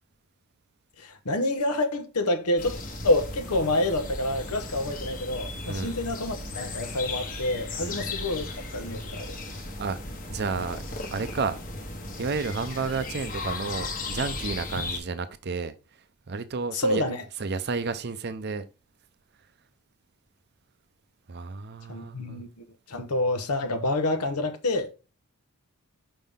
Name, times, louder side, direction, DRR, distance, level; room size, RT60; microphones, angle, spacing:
voice 1, 1.0-9.4 16.7-17.2 21.9-24.9, left 2 dB, 85° left, 1.0 m, -28 dB
sound 1, 2.6-15.0, left 2 dB, 35° left, 1.1 m, -36 dB
voice 2, 5.7-6.0 7.8-8.0 9.5-10.8 11.1-11.6 12.2-15.7 16.3-17.0 17.4-18.7 21.3-22.4, right 4 dB, 50° right, 0.5 m, -31 dB
5.6 x 5.2 x 3.5 m
head